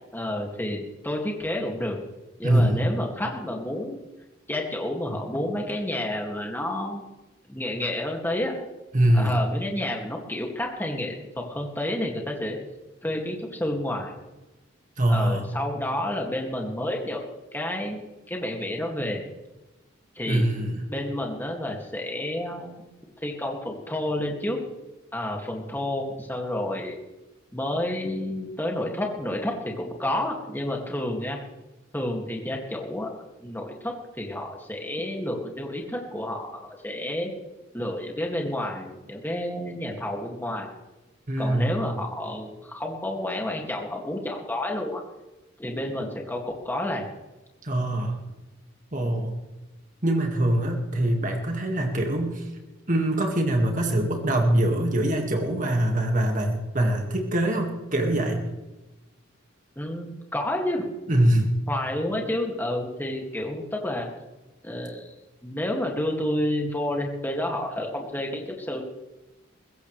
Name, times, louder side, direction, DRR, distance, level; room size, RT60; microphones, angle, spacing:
voice 1, 0.1-2.0 2.4-4.0 4.5-7.0 7.5-8.5 9.1-12.6 13.0-14.2 15.1-17.2 17.5-18.0 18.3-19.3 20.2-20.5 20.9-22.8 23.2-24.6 25.1-26.9 27.5-31.4 31.9-33.1 33.4-37.3 37.7-40.7 41.4-45.0 45.6-47.1 59.8-60.9 61.7-64.1 64.6-65.1 65.4-68.8, left 1 dB, 10° left, 0 dB, 2.3 m, -30 dB
voice 2, 2.4-2.8 8.9-9.3 15.0-15.5 20.3-20.8 41.3-41.8 47.6-48.2 48.9-49.4 50.0-52.5 52.9-58.5 61.1-61.5, right 1 dB, 40° right, 3 dB, 2.0 m, -23 dB
21.5 x 16.0 x 3.4 m, 1.1 s
head